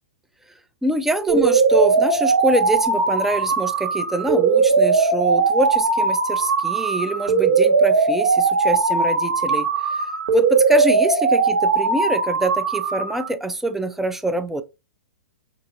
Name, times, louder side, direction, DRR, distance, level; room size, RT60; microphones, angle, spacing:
voice 1, 0.8-14.6, right 1 dB, 5° right, 0.4 m, -25 dB
sound 1, 1.3-13.3, right 4 dB, 65° right, 1.2 m, -19 dB
5.5 x 2.9 x 2.4 m
hypercardioid pair, 120°, 8 cm